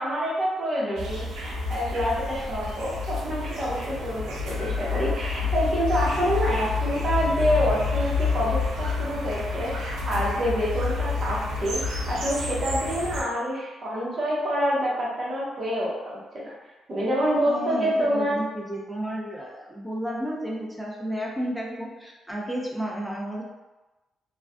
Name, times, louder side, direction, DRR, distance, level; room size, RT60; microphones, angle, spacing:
voice 1, 0.0-16.5 16.9-18.4, equal, 50° right, -5 dB, 0.9 m, -27 dB
sound 1, 1.0-13.2, left 4 dB, 80° right, 0.5 m, -29 dB
voice 2, 17.5-23.4, equal, 10° right, -3 dB, 0.6 m, -32 dB
2.4 x 2.2 x 2.3 m, 1.1 s
supercardioid pair, 55°, 0 cm